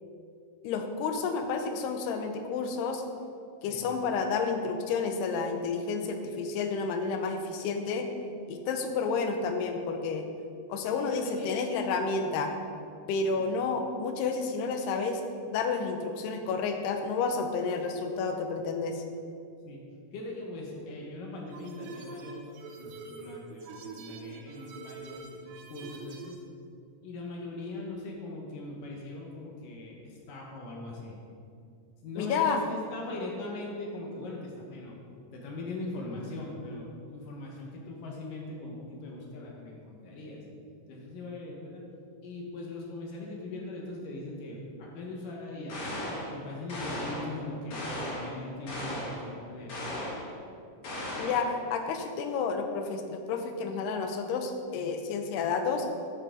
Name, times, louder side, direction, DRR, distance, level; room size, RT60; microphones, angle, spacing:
voice 1, 0.6-3.0 3.6-8.1 8.5-10.3 10.7-12.5 13.1-15.2 15.5-19.0 32.2-32.6 51.2-55.9, left 4 dB, 90° left, 5 dB, 2.8 m, -30 dB
voice 2, 10.9-11.5 13.3-13.5 19.7-19.8 20.1-22.5 22.8-26.4 27.0-31.2 32.0-35.0 35.3-40.4 40.9-41.8 42.2-45.8 46.3-49.9, left 2 dB, 65° left, -1 dB, 2.5 m, -40 dB
sound 1, 21.5-26.4, right 4 dB, 90° right, 2.9 m, -45 dB
sound 2, 45.7-46.3 46.7-47.3 47.7-48.3 48.7-49.2 49.7-50.3 50.8-51.5, left 1 dB, 50° left, 3.3 m, -36 dB
11.5 x 7.5 x 3.8 m, 2.4 s
omnidirectional pair, 4.7 m